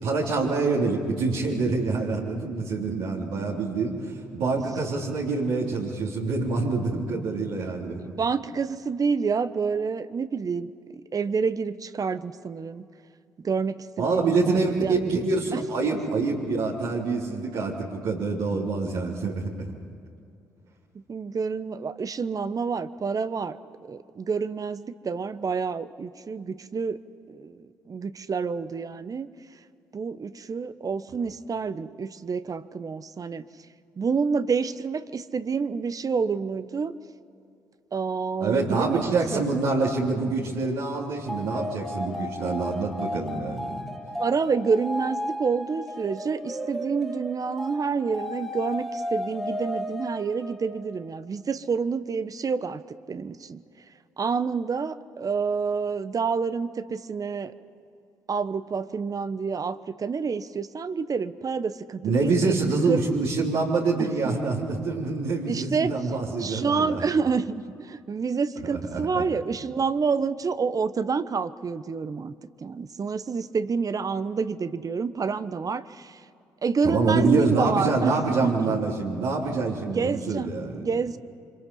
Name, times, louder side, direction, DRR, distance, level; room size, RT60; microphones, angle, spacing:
voice 1, 0.0-8.1 14.0-19.7 38.4-43.8 62.0-67.1 68.6-69.2 76.8-80.8, right 3 dB, 75° right, -5 dB, 3.7 m, -26 dB
voice 2, 8.1-10.7 11.1-12.9 13.4-15.1 15.5-15.6 20.9-23.6 23.8-27.0 27.3-27.6 27.9-29.3 29.9-33.4 34.0-37.0 37.9-39.4 44.2-52.8 53.1-53.6 54.2-57.5 58.3-62.6 62.9-63.0 64.0-64.4 65.5-65.9 66.4-72.3 72.6-76.2 76.6-78.1 78.4-78.8 79.9-81.2, right 5 dB, 40° right, 13 dB, 1.2 m, -28 dB
sound 1, 41.3-51.0, left 1 dB, ahead, 2.6 m, -34 dB
29.0 x 26.0 x 5.6 m, 2.5 s
hypercardioid pair, 50°, 9 cm